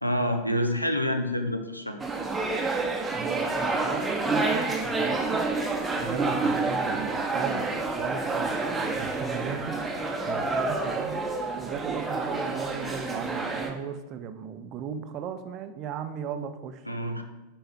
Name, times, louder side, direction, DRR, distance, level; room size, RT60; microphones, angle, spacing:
voice 1, 0.0-2.0 16.9-17.2, equal, 85° left, 6 dB, 0.7 m, -27 dB
sound 1, 2.0-13.7, right 3 dB, 10° right, 0.8 m, -28 dB
voice 2, 3.1-5.6 6.0-7.7 8.0-11.2 11.6-16.8, right 7 dB, 35° right, 9 dB, 0.5 m, -36 dB
8.9 x 4.4 x 3.5 m, 1.1 s
figure-of-eight pair, 90°, 0 cm